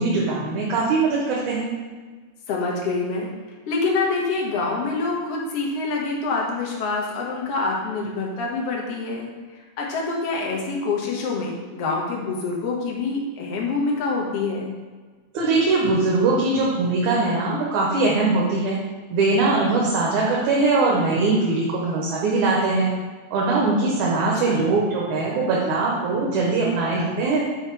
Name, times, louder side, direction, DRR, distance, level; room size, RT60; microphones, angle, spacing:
voice 1, 0.0-1.7 15.3-18.8 19.1-22.9 23.3-27.4, right 3 dB, 80° right, -4 dB, 2.4 m, -21 dB
voice 2, 2.5-3.3 3.7-9.3 9.6-14.7 24.2-24.7, left 3 dB, 60° left, -2 dB, 2.0 m, -26 dB
6.4 x 4.8 x 4.6 m, 1.4 s
omnidirectional pair, 3.5 m